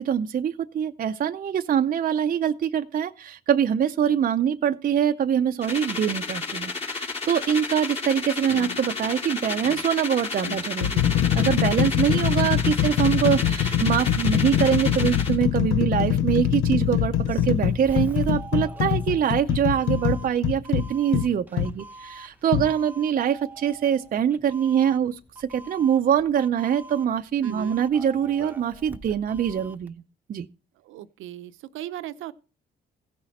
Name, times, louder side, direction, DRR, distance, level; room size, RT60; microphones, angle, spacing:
voice 1, 0.0-30.0 30.3-30.5, right 9 dB, 45° right, 0.5 m, -24 dB
sound 1, 5.6-15.4, left 4 dB, 30° left, 2.5 m, -32 dB
sound 2, 8.5-8.8 9.6-9.8 10.4-21.7 22.5-22.7, left 10 dB, 85° left, 0.6 m, -24 dB
Doorbell, 17.1-29.9, right 2 dB, 10° right, 0.8 m, -44 dB
voice 2, 27.4-27.8 30.8-32.3, right 12 dB, 90° right, 0.7 m, -37 dB
16.0 x 6.4 x 4.1 m
cardioid pair, 90°, 20 cm